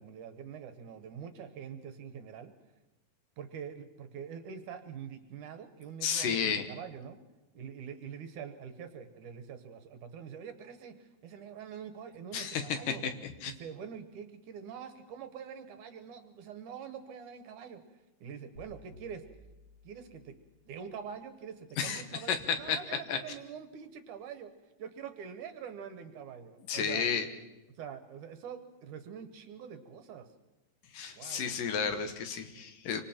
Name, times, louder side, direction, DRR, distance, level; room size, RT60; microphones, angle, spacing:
voice 1, 0.0-2.5 3.4-7.2 7.5-13.0 13.4-17.8 18.2-19.2 19.8-20.4 20.7-24.5 24.8-27.1 27.8-30.3 31.2-31.4, right 7 dB, 65° right, 9 dB, 2.5 m, -45 dB
voice 2, 6.0-6.7 12.3-13.1 13.4-13.5 21.8-22.0 22.3-22.8 23.1-23.2 26.7-27.3 30.9-33.0, left 7 dB, 70° left, 8 dB, 2.9 m, -32 dB
sound 1, 18.5-20.8, left 2 dB, 30° left, 5.2 m, -56 dB
26.5 x 25.0 x 4.5 m, 1.1 s
omnidirectional pair, 4.0 m